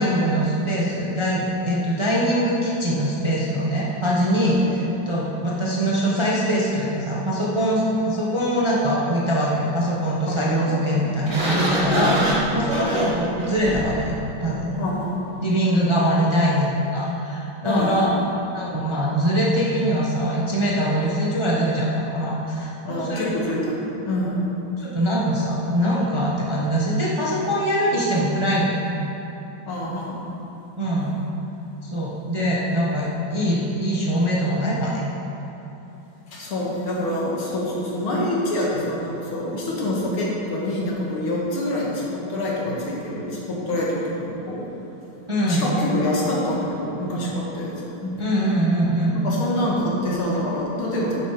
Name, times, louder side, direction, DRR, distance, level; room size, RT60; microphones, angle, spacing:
voice 1, 0.0-4.6 5.1-14.8 15.4-18.1 18.5-23.3 24.8-28.8 30.8-31.2 31.8-35.0 45.3-45.7 48.2-49.2, equal, 20° right, -5 dB, 0.8 m, -22 dB
voice 2, 10.3-10.7 12.0-12.4 14.8-15.2 17.6-18.2 22.8-24.5 29.7-30.2 36.3-44.6 45.5-47.7 48.0-48.2 49.1-51.1, left 1 dB, 80° left, -5 dB, 2.7 m, -26 dB
Sliding door, 11.3-14.0, right 1 dB, 40° right, 1.9 m, -25 dB
10.5 x 8.1 x 4.9 m, 3.0 s
omnidirectional pair, 2.3 m